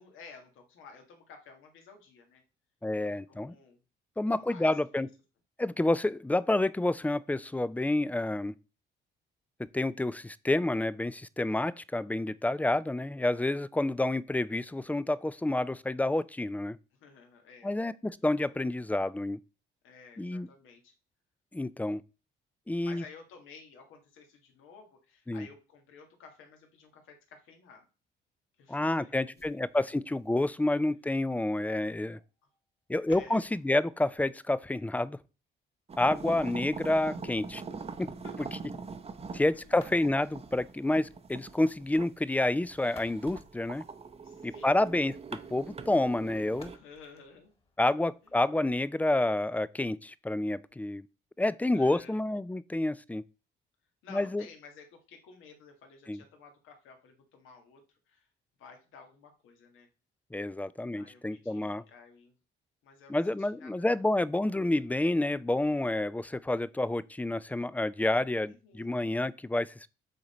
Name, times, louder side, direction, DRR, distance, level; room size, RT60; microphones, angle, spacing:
voice 1, 0.0-2.4 3.0-3.8 4.3-5.0 16.9-17.7 19.8-20.9 22.8-27.9 28.6-29.9 30.9-31.1 31.5-32.2 33.1-33.5 38.2-38.3 39.5-39.9 44.2-44.9 46.7-47.5 48.2-48.4 51.7-52.2 54.0-58.3 58.6-59.9 60.9-62.3 62.8-64.0 68.4-68.9, left 5 dB, 90° left, 1.7 m, -53 dB
voice 2, 2.8-3.5 4.2-5.1 5.6-8.5 9.7-16.8 17.6-19.4 20.2-20.5 21.5-22.0 22.7-23.0 25.3-25.5 28.7-32.2 32.9-35.2 36.0-37.6 38.0-38.1 39.3-43.8 44.4-45.2 45.5-46.7 47.8-51.1 51.4-53.2 54.1-54.4 56.1-56.2 60.3-61.8 63.1-69.7, left 2 dB, 10° left, 0.3 m, -29 dB
sound 1, 29.3-35.2 39.6-40.5 42.5-44.5 46.5-48.5, left 3 dB, 30° left, 1.7 m, -59 dB
sound 2, 35.9-46.8, right 4 dB, 30° right, 0.7 m, -43 dB
7.7 x 3.9 x 4.2 m
cardioid pair, 90°, 20 cm